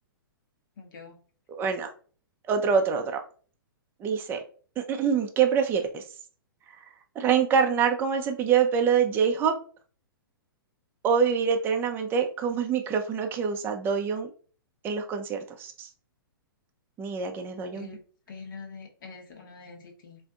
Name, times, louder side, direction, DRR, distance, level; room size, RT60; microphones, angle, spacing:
voice 1, 0.8-1.2 17.7-18.0 18.3-20.2, left 4 dB, 65° left, 1 dB, 1.0 m, -44 dB
voice 2, 1.5-1.9 2.4-3.2 4.0-4.4 4.9-6.0 7.2-9.5 11.0-14.3 14.8-15.9 17.0-17.9, right 6 dB, 20° right, 4 dB, 0.4 m, -25 dB
3.3 x 2.6 x 2.3 m, 0.40 s
hypercardioid pair, 125°, 12 cm